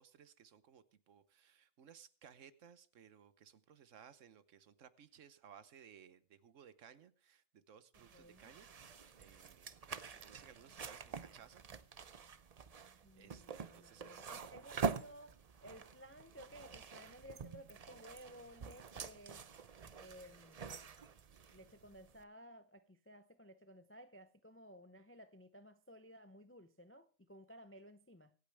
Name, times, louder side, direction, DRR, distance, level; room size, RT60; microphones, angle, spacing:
voice 1, 0.0-8.7 9.2-11.6 12.7-14.2, right 8 dB, 75° right, 1.3 m, -61 dB
sound 1, 7.9-22.2, right 5 dB, 40° right, 0.6 m, -46 dB
voice 2, 8.1-8.5 13.0-19.5 20.0-20.8 21.5-28.3, equal, 20° left, 0.3 m, -57 dB
25.0 x 8.5 x 3.4 m
omnidirectional pair, 1.3 m